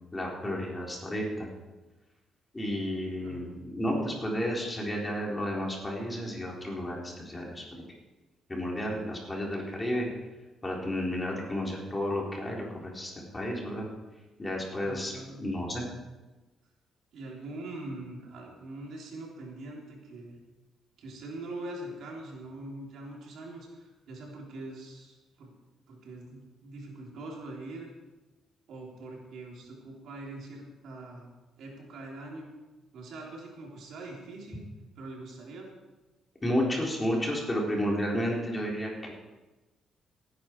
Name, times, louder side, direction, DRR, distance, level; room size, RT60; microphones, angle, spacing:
voice 1, 0.1-1.5 2.5-7.8 8.5-10.1 10.6-13.9 14.4-15.1 15.4-15.8 36.4-39.1, equal, 20° left, -2 dB, 4.0 m, -32 dB
voice 2, 14.8-15.4 17.1-20.4 21.0-25.5 25.9-27.9 28.7-31.3 31.6-32.5 32.9-34.6 35.0-35.7, right 2 dB, 75° right, -2 dB, 3.7 m, -43 dB
16.5 x 10.0 x 4.7 m, 1.1 s
cardioid pair, 90°, 0 cm